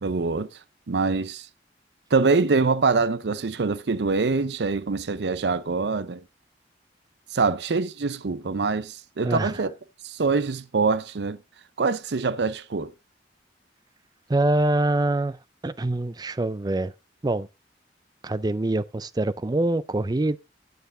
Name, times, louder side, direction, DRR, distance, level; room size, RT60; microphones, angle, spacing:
voice 1, 0.0-0.5 0.9-1.5 2.1-6.2 7.3-9.7 10.0-11.4 11.8-12.9, right 4 dB, 75° right, 0.6 m, -24 dB
voice 2, 9.2-9.6 14.3-15.4 15.6-16.9 17.2-17.5 18.2-20.4, right 2 dB, 25° right, 0.5 m, -24 dB
9.3 x 9.0 x 3.8 m
head